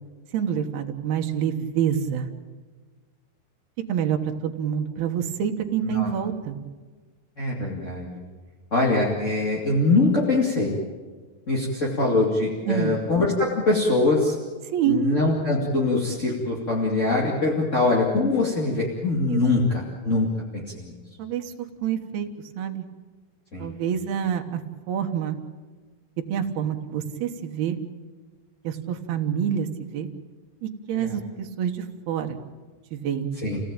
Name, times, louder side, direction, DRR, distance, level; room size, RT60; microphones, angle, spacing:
voice 1, 0.3-2.3 3.9-6.6 12.7-13.0 14.7-15.0 19.3-19.4 21.2-21.5 21.8-22.3 22.6-22.9 23.6-24.6 24.9-25.4 26.3-27.8 28.6-30.1 30.6-32.4 32.9-33.3, right 8 dB, 70° right, 4 dB, 3.3 m, -27 dB
voice 2, 7.4-8.2 8.7-10.7 11.5-14.3 14.8-20.3 20.5-20.9 23.5-23.7 30.9-31.2 33.4-33.6, left 2 dB, 25° left, -3 dB, 1.9 m, -23 dB
28.5 x 17.0 x 8.9 m, 1.4 s
omnidirectional pair, 4.7 m